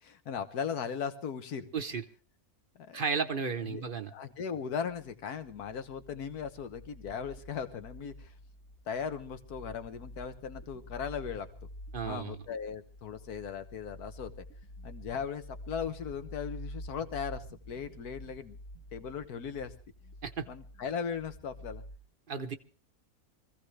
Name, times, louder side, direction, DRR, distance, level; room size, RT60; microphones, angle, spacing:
voice 1, 0.0-1.7 2.7-3.0 3.6-3.8 4.1-8.3 8.9-11.5 12.0-14.4 14.8-18.6 18.9-19.7 20.5-21.8, left 7 dB, 75° left, 10 dB, 1.7 m, -38 dB
voice 2, 1.7-2.0 2.9-4.1 11.9-12.4 20.2-20.5 22.3-22.5, right 5 dB, 40° right, 8 dB, 0.9 m, -33 dB
sound 1, 5.2-22.0, equal, 45° left, 1.9 m, -48 dB
24.0 x 15.5 x 3.3 m, 0.36 s
omnidirectional pair, 1.6 m